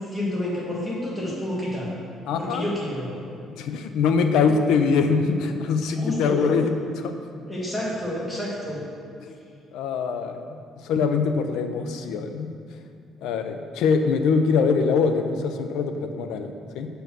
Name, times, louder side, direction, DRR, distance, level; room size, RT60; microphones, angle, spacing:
voice 1, 0.0-1.9 2.4-3.1 6.0-6.4 7.5-8.8, left 1 dB, 10° left, -6 dB, 2.0 m, -29 dB
voice 2, 2.3-2.7 3.6-7.1 9.7-10.6 10.8-12.5 13.2-16.9, left 5 dB, 85° left, 7 dB, 0.6 m, -23 dB
6.7 x 4.5 x 6.1 m, 2.3 s
cardioid pair, 140°, 0 cm